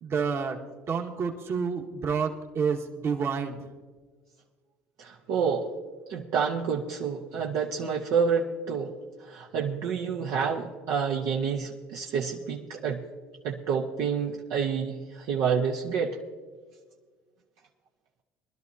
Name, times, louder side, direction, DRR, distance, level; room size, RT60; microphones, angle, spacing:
voice 1, 0.0-0.6 0.9-3.6, right 6 dB, 50° right, 2 dB, 1.6 m, -29 dB
voice 2, 5.0-5.7 6.1-8.9 9.2-13.0 13.4-16.2, right 6 dB, 70° right, 0 dB, 1.0 m, -28 dB
22.5 x 12.0 x 2.7 m, 1.5 s
hypercardioid pair, 75°, 6 cm